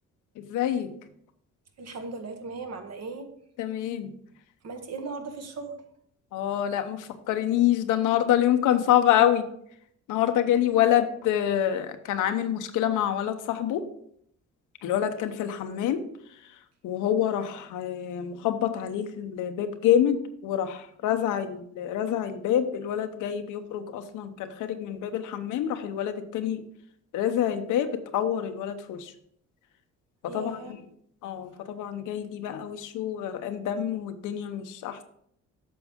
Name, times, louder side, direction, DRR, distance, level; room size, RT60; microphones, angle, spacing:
voice 1, 0.4-0.9 3.6-4.1 6.3-9.5 10.1-13.8 14.8-16.0 16.8-20.2 20.4-26.6 27.1-27.9 28.1-29.1 30.2-30.8 31.2-35.0, left 10 dB, 85° left, 8 dB, 0.9 m, -26 dB
voice 2, 1.8-3.3 4.6-5.8 10.7-10.8 30.3-30.8, right 3 dB, 55° right, 6 dB, 1.4 m, -37 dB
8.7 x 6.1 x 3.6 m, 0.67 s
cardioid pair, 90°, 30 cm